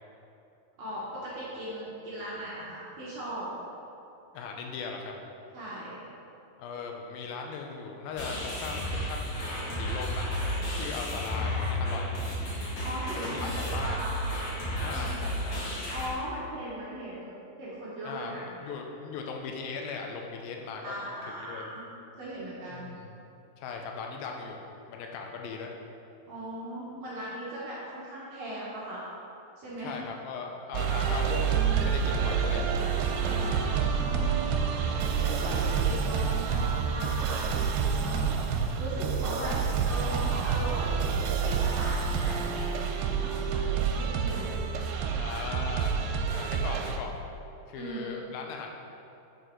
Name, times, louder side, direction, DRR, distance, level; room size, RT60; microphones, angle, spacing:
voice 1, 0.8-3.4 5.5-6.0 12.8-14.1 14.8-15.2 15.9-17.3 17.6-18.6 20.8-21.8 22.2-22.9 26.3-29.0 29.6-30.0 33.2-34.4 35.1-37.6 37.9-39.6 39.8-41.1 41.4-42.7 43.0-44.5 47.7-48.1, right 1 dB, 65° right, -8 dB, 1.7 m, -38 dB
voice 2, 4.3-5.1 6.6-9.4 9.7-12.2 13.1-14.0 14.8-15.7 18.0-21.0 21.4-21.7 22.7-23.1 23.6-24.6 24.9-25.7 29.8-32.7 39.3-39.6 45.2-45.9 46.3-47.1 47.7-48.7, left 5 dB, 75° left, 2 dB, 2.3 m, -38 dB
sound 1, 8.1-16.1, equal, 55° left, 2.4 m, -32 dB
sound 2, 30.7-47.0, right 6 dB, 80° right, 2.5 m, -28 dB
6.9 x 6.4 x 4.5 m, 2.7 s
omnidirectional pair, 4.5 m